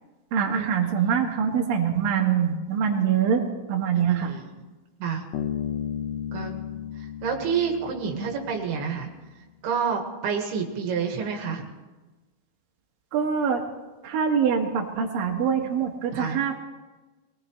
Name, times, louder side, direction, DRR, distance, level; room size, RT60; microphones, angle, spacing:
voice 1, 0.3-4.4 13.1-13.6 14.0-16.6, right 7 dB, 65° right, 0 dB, 3.2 m, -24 dB
voice 2, 4.1-4.5 5.0-5.2 6.3-6.5 7.2-9.1 9.6-11.6 16.1-16.4, right 6 dB, 85° right, 1 dB, 3.6 m, -28 dB
Bass guitar, 5.3-8.8, left 9 dB, 75° left, 2.7 m, -34 dB
23.5 x 18.5 x 3.2 m, 1.2 s
omnidirectional pair, 4.5 m